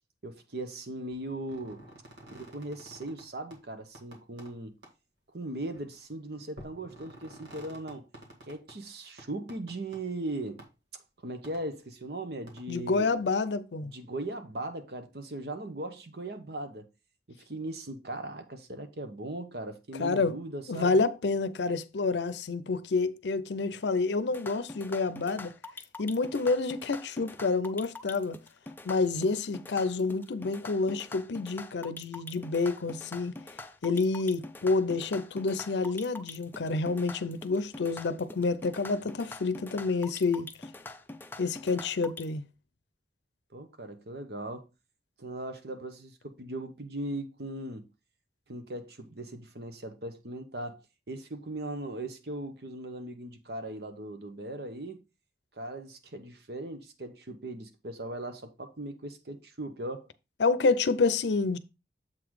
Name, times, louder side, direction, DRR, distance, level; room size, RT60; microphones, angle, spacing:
voice 1, 0.2-1.8 2.3-4.8 5.3-8.1 8.5-10.6 11.2-13.2 13.8-16.9 17.3-21.0 43.5-44.7 45.2-47.9 48.5-55.0 55.5-60.1, right 1 dB, 60° right, 1.0 m, -39 dB
sound 1, 1.1-3.2 3.5-3.6 3.9-4.5 4.8-4.9 5.6-5.8 6.6-8.7 9.2-10.0 10.6-10.7 11.4-11.6 12.5-12.6, right 1 dB, 80° right, 2.1 m, -50 dB
voice 2, 12.7-13.9 20.0-20.4 20.7-25.5 26.0-28.4 28.8-33.4 33.8-40.5 41.4-42.4 60.4-61.6, left 3 dB, 75° left, 0.6 m, -28 dB
sound 2, 24.3-42.2, left 2 dB, 10° left, 0.4 m, -44 dB
7.5 x 4.0 x 4.7 m
head